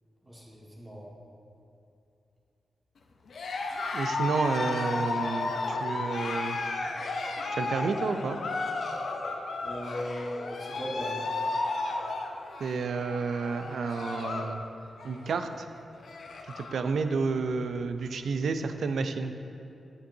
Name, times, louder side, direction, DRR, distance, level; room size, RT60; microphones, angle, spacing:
voice 1, 0.2-1.1 9.6-11.3, equal, 15° right, -4 dB, 1.6 m, -38 dB
Cheering, 3.3-14.6 14.9-15.3 15.7-15.8 16.0-16.8, left 3 dB, 70° left, 0.6 m, -33 dB
voice 2, 3.9-6.6 7.5-8.4 12.6-14.6 15.0-15.7 16.6-19.3, right 4 dB, 75° right, 9 dB, 0.4 m, -30 dB
8.7 x 8.0 x 2.7 m, 2.7 s
cardioid pair, 90°, 0 cm